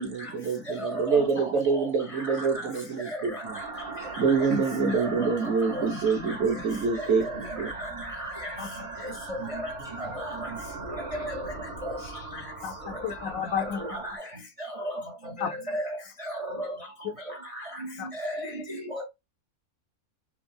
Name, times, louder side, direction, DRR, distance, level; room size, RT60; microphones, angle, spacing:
voice 1, 0.0-3.6 4.2-7.2 7.6-7.7, right 5 dB, 55° right, 1.3 m, -26 dB
voice 2, 0.8-1.9 2.1-2.5 3.1-3.4 4.9-5.3 5.7-5.9 7.2-7.4 7.8-7.9 8.2-8.3 9.0-9.7 10.0-10.5 11.2-11.3 11.8-12.0 13.9-14.1 14.8-15.0 15.4-15.9 16.2-16.7 17.6-17.7 18.2-19.0, equal, 35° right, 0.6 m, -34 dB
sound 1, 3.4-14.2, right 3 dB, 75° right, 2.1 m, -40 dB
voice 3, 12.6-14.0 15.4-15.5 18.0-18.1, left 7 dB, 70° left, 1.0 m, -32 dB
5.1 x 2.0 x 3.3 m
omnidirectional pair, 1.6 m